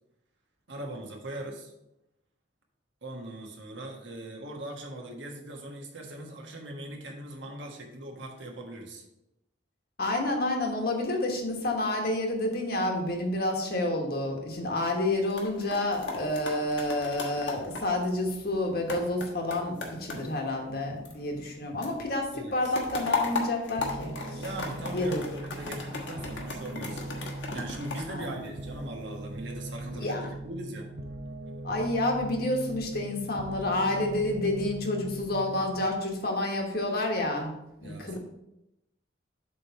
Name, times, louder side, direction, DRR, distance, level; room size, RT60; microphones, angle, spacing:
voice 1, 0.7-1.7 3.0-9.0 22.3-22.7 24.3-30.9 37.8-38.2, right 1 dB, 85° right, 1 dB, 1.4 m, -40 dB
voice 2, 10.0-24.4 24.9-25.2 28.1-28.4 29.9-30.3 31.6-38.2, left 1 dB, 55° left, 2 dB, 1.3 m, -29 dB
sound 1, 15.1-21.5 21.8-29.0 29.5-29.8, left 3 dB, 75° left, 1.4 m, -37 dB
sound 2, 23.8-35.8, right 1 dB, 60° right, 0.6 m, -40 dB
7.7 x 3.3 x 5.7 m, 0.88 s
head